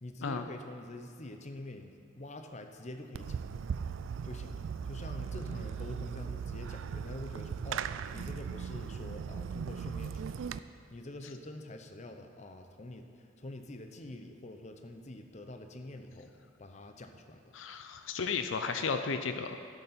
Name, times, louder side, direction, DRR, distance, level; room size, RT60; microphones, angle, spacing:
voice 1, 0.0-3.4 4.2-10.5 10.9-16.3 16.6-17.5, left 1 dB, 35° left, 5 dB, 0.7 m, -46 dB
Fireworks, 3.1-10.6, right 6 dB, 70° right, 0.3 m, -38 dB
voice 2, 17.5-19.6, left 5 dB, 70° left, 8 dB, 0.5 m, -34 dB
12.0 x 6.9 x 5.8 m, 2.4 s
head